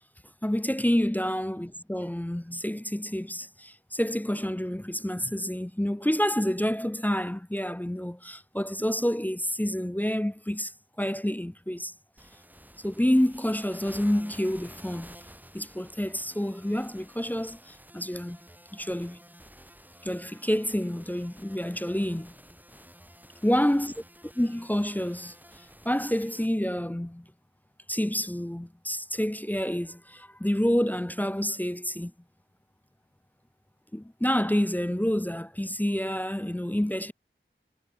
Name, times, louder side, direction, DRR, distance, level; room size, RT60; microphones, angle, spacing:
voice 1, 0.4-10.7 11.0-11.9 12.8-15.2 15.5-18.4 18.7-19.2 20.0-22.3 23.4-23.9 24.4-25.3 25.8-27.2 27.9-32.1 33.9-37.1, equal, 10° left, 0.4 m, -28 dB
sound 1, 12.2-26.5, equal, 10° right, 5.2 m, -51 dB
wide cardioid pair, 40°, 21 cm